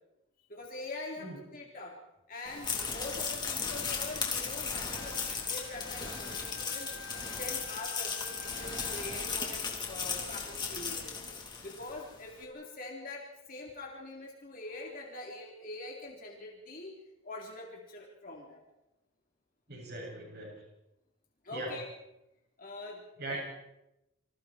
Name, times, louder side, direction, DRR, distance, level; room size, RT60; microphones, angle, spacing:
voice 1, 0.5-2.0 2.3-7.0 7.4-11.2 11.6-16.9 17.2-18.6 21.4-21.9 22.6-23.0 23.3-23.4, left 2 dB, 40° left, -2 dB, 3.8 m, -44 dB
sound 1, 2.5-12.0, left 5 dB, 20° left, 3.7 m, -36 dB
Wind instrument woodwind instrument, 4.9-9.4, left 1 dB, 85° right, 3.0 m, -49 dB
voice 2, 19.7-20.5 21.5-21.7 23.2-23.4, right 2 dB, 50° right, -1 dB, 7.5 m, -39 dB
29.0 x 26.0 x 4.6 m, 0.91 s
head